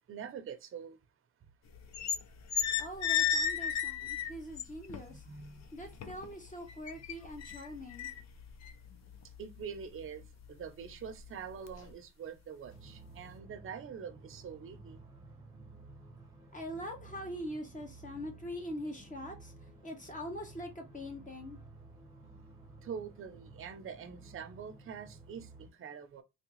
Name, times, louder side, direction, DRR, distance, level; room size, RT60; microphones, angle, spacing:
voice 1, 0.1-1.0 4.2-4.3 5.1-5.7 9.4-10.2 10.5-15.0 22.8-26.2, right 7 dB, 45° right, 0.7 m, -45 dB
sound 1, 1.7-2.2 2.5-5.0 5.4-6.3 6.7-9.8 10.2-10.4 10.9-11.3 11.7-11.9, left 8 dB, 60° left, 0.6 m, -33 dB
voice 2, 2.8-5.2 5.7-8.2 16.5-21.6, equal, 25° left, 1.2 m, -43 dB
sound 2, 12.6-25.7, right 3 dB, 15° right, 0.9 m, -54 dB
3.5 x 2.3 x 3.0 m
cardioid pair, 90°, 30 cm